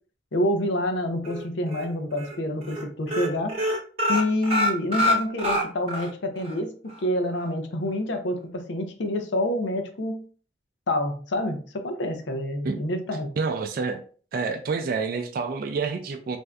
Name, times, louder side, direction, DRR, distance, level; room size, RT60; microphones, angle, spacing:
voice 1, 0.3-3.6 4.1-10.2 10.9-13.3, left 1 dB, 80° left, 6 dB, 0.6 m, -27 dB
sound 1, 1.2-1.8 2.2-2.4 2.6-2.8 3.1-6.1 6.4-6.5 6.9-7.0, equal, 35° right, 0.9 m, -25 dB
voice 2, 13.4-14.0 14.3-16.4, right 4 dB, 55° right, 6 dB, 0.4 m, -28 dB
3.3 x 2.6 x 2.3 m, 0.41 s
head